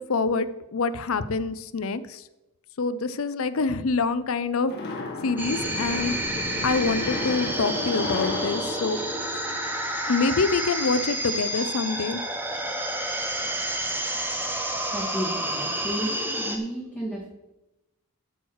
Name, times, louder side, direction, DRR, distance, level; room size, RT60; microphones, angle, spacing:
voice 1, 0.0-2.2 2.8-4.7 5.2-6.2 6.6-9.0 10.1-12.2, left 4 dB, 70° left, 14 dB, 0.6 m, -26 dB
sound 1, 4.7-10.0, left 3 dB, 50° left, 1.8 m, -34 dB
sound 2, 5.4-16.6, right 1 dB, 10° right, 1.0 m, -29 dB
voice 2, 14.9-16.1 16.4-17.3, right 1 dB, 5° left, -8 dB, 2.5 m, -32 dB
12.5 x 4.6 x 6.4 m, 0.97 s
head